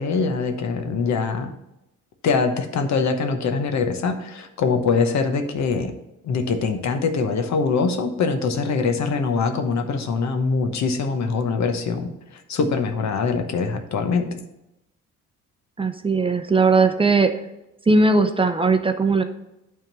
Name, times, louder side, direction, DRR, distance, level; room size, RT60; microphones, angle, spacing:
voice 1, 0.0-1.5 2.2-5.9 6.2-14.3, left 4 dB, 65° left, 7 dB, 1.0 m, -23 dB
voice 2, 15.8-17.3 17.9-19.2, right 3 dB, 20° right, 7 dB, 0.6 m, -18 dB
8.8 x 3.7 x 6.0 m, 0.90 s
cardioid pair, 90°, 30 cm